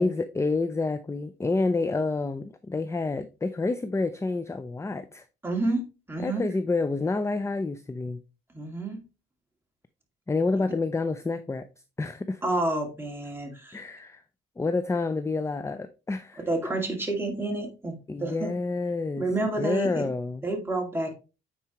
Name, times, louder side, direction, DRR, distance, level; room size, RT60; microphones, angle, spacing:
voice 1, 0.0-5.2 6.2-8.2 10.3-11.7 12.0-12.4 13.7-14.2 14.6-16.4 18.1-19.3 19.6-20.4, left 3 dB, 15° left, 0.5 m, -28 dB
voice 2, 5.4-6.5 8.5-9.0 12.4-13.8 16.5-18.5 19.2-20.1 20.4-21.1, right 2 dB, 10° right, 2.3 m, -29 dB
8.7 x 4.7 x 3.0 m
cardioid pair, 90°, 20 cm